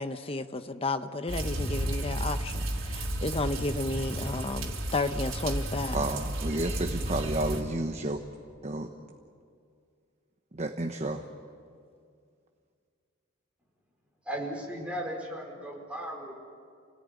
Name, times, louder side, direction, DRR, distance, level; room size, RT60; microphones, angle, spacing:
voice 1, 0.0-6.2, left 2 dB, 25° left, 10 dB, 0.9 m, -32 dB
sound 1, 1.3-7.6, right 1 dB, 75° right, 3.8 m, -33 dB
voice 2, 5.9-8.2 8.6-8.9 10.6-11.2, right 2 dB, 30° right, 5 dB, 1.1 m, -31 dB
voice 3, 14.2-16.3, equal, 5° right, -2 dB, 4.8 m, -36 dB
29.0 x 18.0 x 9.7 m, 2.2 s
head